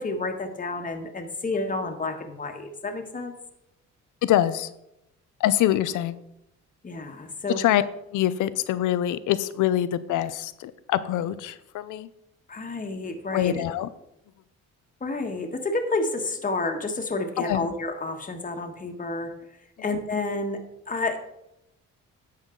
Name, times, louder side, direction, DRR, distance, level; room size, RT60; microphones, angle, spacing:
voice 1, 0.0-3.3 6.8-7.6 12.5-13.6 15.0-19.3 19.8-21.2, left 2 dB, 25° left, 4 dB, 1.5 m, -30 dB
voice 2, 4.2-4.7 5.4-6.2 7.5-7.8 8.1-12.1 13.3-13.9 17.5-17.7 19.8-19.9, left 12 dB, 85° left, 15 dB, 0.7 m, -24 dB
11.0 x 7.3 x 3.8 m, 0.84 s
cardioid pair, 90°, 30 cm